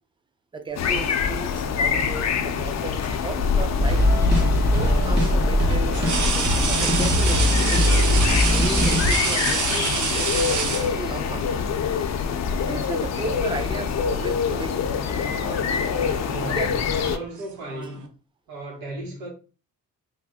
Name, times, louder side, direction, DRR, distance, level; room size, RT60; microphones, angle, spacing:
voice 1, 0.5-4.1 4.7-8.0 8.5-11.7 12.5-14.8 15.1-15.7 16.5-16.7, right 3 dB, 15° right, 0.4 m, -35 dB
sound 1, 0.8-17.2, left 6 dB, 55° left, 0.5 m, -25 dB
sound 2, 1.6-2.5 4.2-4.4 5.9-11.4 12.6-12.8 13.2-14.0 14.2-14.6 15.5-18.1, right 5 dB, 60° right, 0.8 m, -28 dB
sound 3, 3.8-9.1, left 1 dB, 30° right, 1.4 m, -21 dB
voice 2, 16.2-18.0 18.5-19.3, right 2 dB, 85° right, 1.2 m, -35 dB
3.3 x 2.1 x 3.4 m
cardioid pair, 105°, 33 cm